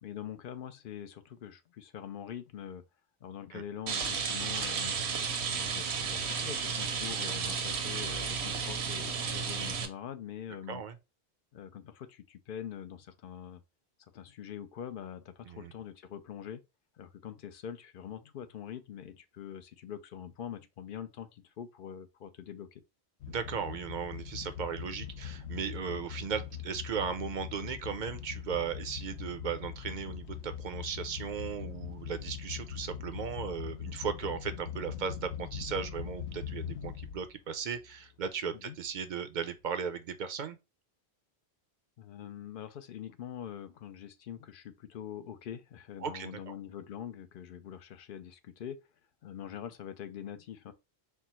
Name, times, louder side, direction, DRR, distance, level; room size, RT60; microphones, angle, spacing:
voice 1, 0.0-2.8 3.2-4.9 5.5-10.8 11.5-13.6 14.1-16.6 17.0-22.8 38.5-38.8 42.0-48.8 49.2-50.7, left 9 dB, 60° left, 0.7 m, -44 dB
Rain, 3.9-9.9, right 6 dB, 75° right, 1.0 m, -33 dB
sound 1, 23.2-37.4 37.7-38.1 38.5-38.6 38.8-39.0, left 9 dB, 85° left, 0.9 m, -42 dB
voice 2, 23.3-40.6 46.0-46.5, right 7 dB, 55° right, 0.6 m, -37 dB
4.4 x 2.0 x 4.1 m
omnidirectional pair, 1.1 m